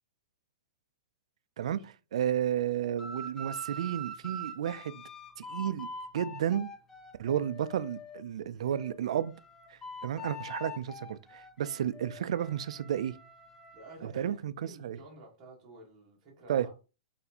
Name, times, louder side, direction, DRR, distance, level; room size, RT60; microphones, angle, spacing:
voice 1, 2.1-5.0 5.4-5.9 6.1-6.7 7.2-9.3 9.7-13.1 14.0-14.5 14.8-15.0 16.5-16.8, right 10 dB, 65° right, 0.3 m, -32 dB
sound 1, 3.0-8.2 8.7-14.0, equal, 10° left, 0.4 m, -44 dB
voice 2, 13.7-16.7, right 1 dB, 20° right, 1.4 m, -52 dB
4.0 x 3.4 x 2.8 m
hypercardioid pair, 175°, 4 cm